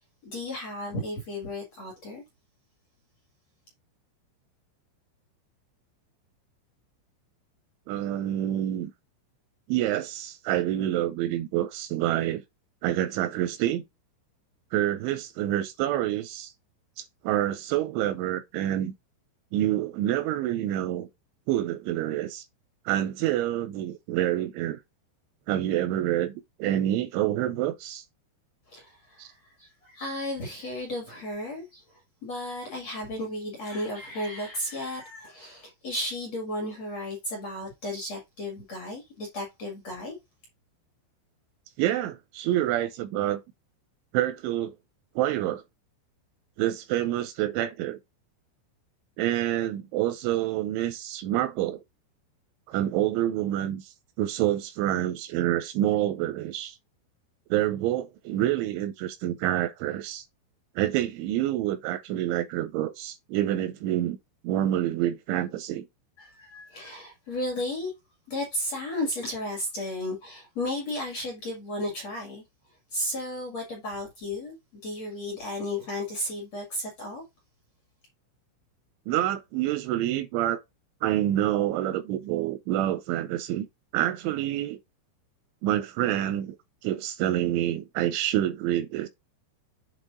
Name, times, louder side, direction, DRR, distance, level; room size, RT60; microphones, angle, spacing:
voice 1, 0.2-2.2 28.7-29.3 29.6-31.8 32.2-40.2 66.2-67.9 68.3-72.4 72.9-77.2, left 1 dB, 50° left, 2.1 m, -34 dB
voice 2, 7.9-8.9 9.7-12.4 12.8-13.8 14.7-16.5 17.0-18.9 19.5-21.1 21.5-22.5 22.9-24.8 25.5-26.3 26.6-28.1 29.2-29.3 41.8-43.4 44.1-44.7 45.2-45.6 46.6-48.0 49.2-51.8 52.7-56.8 57.5-60.3 60.8-64.2 64.4-65.9 79.1-80.6 81.0-83.7 83.9-84.8 85.6-86.6 86.8-89.1, right 13 dB, 85° right, 2.8 m, -27 dB
8.1 x 3.8 x 3.7 m
omnidirectional pair, 5.7 m